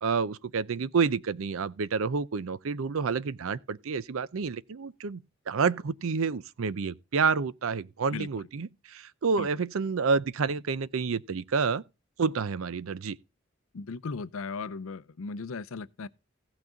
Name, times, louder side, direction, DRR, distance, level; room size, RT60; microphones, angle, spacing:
voice 1, 0.0-11.8 12.2-13.2, right 5 dB, 75° right, 0.5 m, -29 dB
voice 2, 13.7-16.1, left 4 dB, 80° left, 0.5 m, -37 dB
15.5 x 6.0 x 3.8 m
head